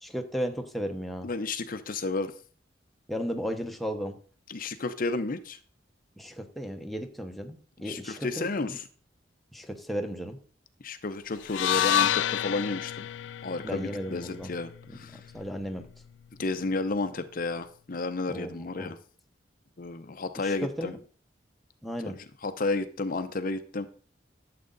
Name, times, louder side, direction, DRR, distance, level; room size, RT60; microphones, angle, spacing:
voice 1, 0.0-1.3 3.1-4.2 6.2-8.7 9.5-10.4 13.6-14.5 15.1-15.9 18.3-19.0 20.4-21.0 21.8-22.2, equal, ahead, 3 dB, 1.0 m, -35 dB
voice 2, 1.2-2.3 4.5-5.6 7.8-8.9 10.8-13.1 13.4-15.3 16.4-19.0 19.8-21.0 22.0-23.9, left 3 dB, 50° left, 9 dB, 0.7 m, -32 dB
sound 1, 11.4-15.6, left 10 dB, 85° left, 0.3 m, -29 dB
12.5 x 7.6 x 4.0 m, 0.42 s
head